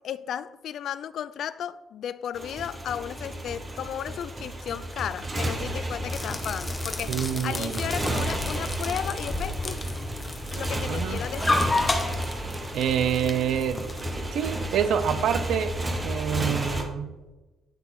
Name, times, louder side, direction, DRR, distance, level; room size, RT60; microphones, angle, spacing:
voice 1, 0.0-7.2 7.4-9.8 10.5-11.7, left 9 dB, 65° left, 0.4 m, -34 dB
Motorcycle, 2.3-16.8, right 1 dB, 20° right, 1.2 m, -32 dB
sound 1, 6.1-14.1, left 2 dB, 20° left, 1.1 m, -31 dB
voice 2, 7.1-7.8 10.9-11.2 12.7-13.9 14.3-15.8 16.0-17.2, right 9 dB, 75° right, 0.6 m, -27 dB
9.3 x 6.0 x 4.2 m
cardioid pair, 125°, 0 cm